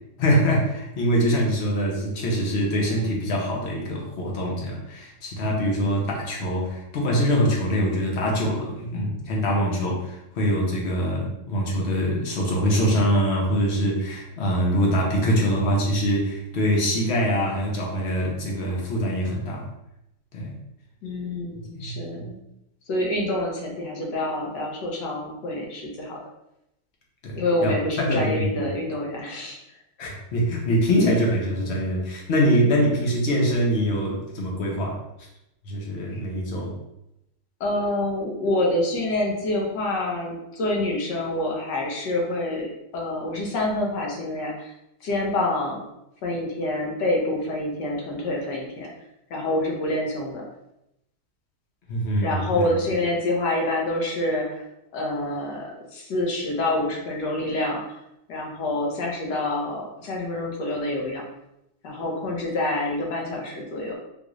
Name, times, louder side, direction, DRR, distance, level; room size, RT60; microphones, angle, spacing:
voice 1, 0.2-19.6 20.3-20.5 21.8-22.0 27.2-28.6 30.0-35.0 35.7-36.7 51.9-52.7, equal, 55° left, -2 dB, 0.7 m, -24 dB
voice 2, 21.0-22.4 22.9-26.2 27.4-29.6 36.1-36.2 37.6-42.7 42.9-44.7 45.0-45.8 46.2-48.9 49.3-50.5 52.2-54.7 54.9-57.8 58.3-61.2 61.8-64.0, left 1 dB, 75° left, -1 dB, 1.4 m, -27 dB
3.8 x 2.4 x 3.0 m, 0.84 s
omnidirectional pair, 1.9 m